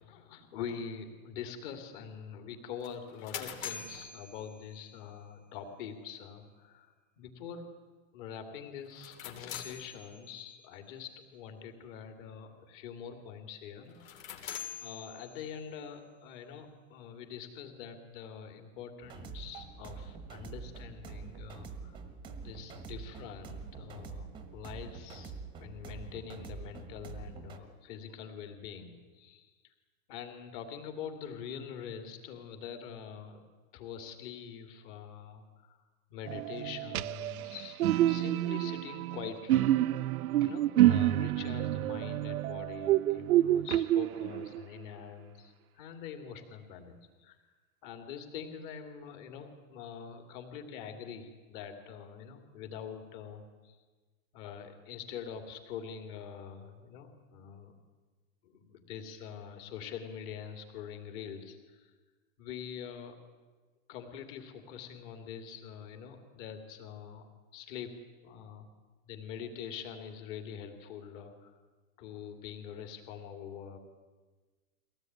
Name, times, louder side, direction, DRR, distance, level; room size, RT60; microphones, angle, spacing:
voice 1, 0.0-7.7 8.1-14.2 14.8-22.0 22.4-24.3 24.5-25.3 25.6-29.7 30.1-33.4 33.7-35.8 36.1-39.7 40.4-47.4 47.8-53.8 54.3-57.7 58.4-61.9 62.4-63.2 63.9-67.3 67.5-68.7 69.1-71.5 72.0-73.8, left 7 dB, 35° left, 6 dB, 3.1 m, -44 dB
sound 1, 2.8-5.1 8.9-10.5 13.9-15.7, left 8 dB, 65° left, 3.5 m, -44 dB
sound 2, 19.0-27.6, right 5 dB, 10° right, 1.2 m, -45 dB
sound 3, 36.3-44.6, right 14 dB, 85° right, 0.8 m, -28 dB
23.5 x 18.0 x 9.6 m, 1.3 s
supercardioid pair, 175°, 42 cm